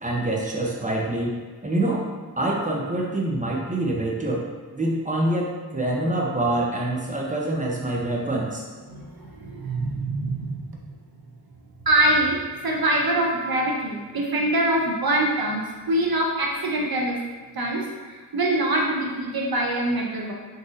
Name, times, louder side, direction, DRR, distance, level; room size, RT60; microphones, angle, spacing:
voice 1, 0.0-2.0 2.4-4.5 4.7-8.6, right 1 dB, 20° right, -2 dB, 0.6 m, -25 dB
voice 2, 8.9-10.8 11.9-17.2 17.5-17.8 18.3-20.3, right 1 dB, 70° right, -1 dB, 0.7 m, -24 dB
3.9 x 2.7 x 2.5 m, 1.5 s
wide cardioid pair, 45°, 37 cm